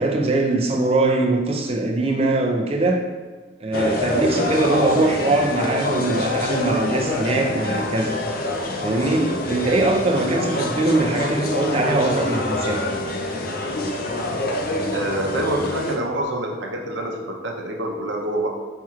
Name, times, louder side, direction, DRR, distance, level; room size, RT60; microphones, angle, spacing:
voice 1, 0.0-3.0 3.6-8.2 8.8-12.8, right 2 dB, 30° right, 3 dB, 0.4 m, -21 dB
sound 1, 3.7-16.0, left 2 dB, 50° left, 0.5 m, -26 dB
voice 2, 14.9-18.5, right 1 dB, 75° right, 1 dB, 0.6 m, -26 dB
4.5 x 4.4 x 2.4 m, 1.4 s
head